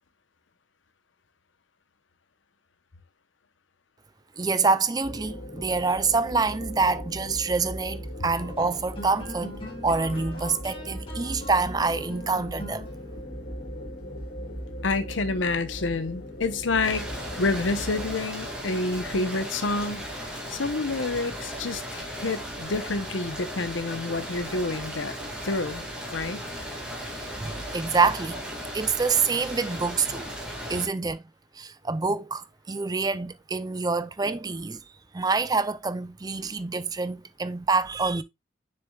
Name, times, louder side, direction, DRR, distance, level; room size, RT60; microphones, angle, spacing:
voice 1, 4.4-9.5 9.8-12.9 27.1-28.4 28.7-30.3 30.7-31.2 31.6-34.8 35.1-38.2, right 4 dB, 20° right, 0.4 m, -26 dB
sound 1, 5.0-18.1, equal, 60° left, 3.6 m, -38 dB
sound 2, 7.4-17.0, equal, 30° left, 2.4 m, -43 dB
voice 2, 14.8-17.1 17.4-25.2 25.4-25.8 26.1-26.4, left 3 dB, 90° left, 0.9 m, -28 dB
sound 3, 16.8-30.9, equal, 5° right, 2.4 m, -36 dB
6.8 x 6.5 x 2.3 m
head